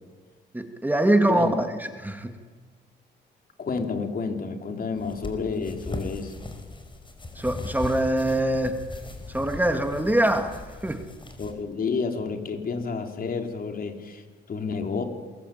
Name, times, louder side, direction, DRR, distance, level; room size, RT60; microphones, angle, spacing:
voice 1, 0.5-2.4 7.4-8.8 9.3-11.1, right 1 dB, 10° right, 6 dB, 2.2 m, -24 dB
voice 2, 3.6-6.4 11.4-15.0, left 5 dB, 45° left, 5 dB, 3.8 m, -30 dB
sound 1, 5.0-11.5, left 2 dB, 25° left, 5.1 m, -38 dB
27.0 x 21.5 x 9.3 m, 1.5 s
cardioid pair, 90°, 20 cm